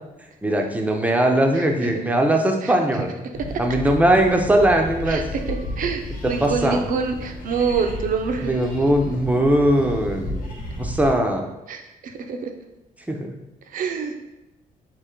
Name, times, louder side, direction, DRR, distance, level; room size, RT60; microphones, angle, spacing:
voice 1, 0.4-3.1 3.6-5.2 6.4-6.8 8.4-10.4 10.8-11.4 13.1-13.2, right 1 dB, 10° right, 3 dB, 0.6 m, -20 dB
voice 2, 1.5-1.9 2.6-2.7 5.1-8.5 11.7-12.5 13.7-14.2, right 5 dB, 65° right, 5 dB, 0.6 m, -26 dB
sound 1, 3.3-11.1, left 1 dB, 70° left, 1.1 m, -33 dB
3.7 x 3.1 x 4.4 m, 0.95 s
cardioid pair, 115°, 15 cm